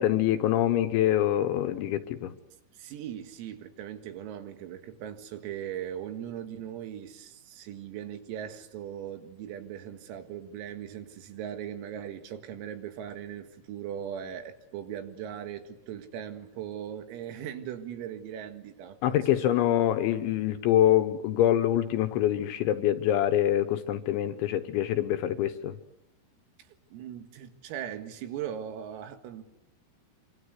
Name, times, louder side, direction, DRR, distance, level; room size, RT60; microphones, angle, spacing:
voice 1, 0.0-2.4 19.0-25.7, left 12 dB, 75° left, 10 dB, 3.2 m, -25 dB
voice 2, 2.7-19.6 26.9-29.4, right 9 dB, 80° right, 7 dB, 4.5 m, -39 dB
26.0 x 26.0 x 8.3 m, 0.92 s
omnidirectional pair, 6.0 m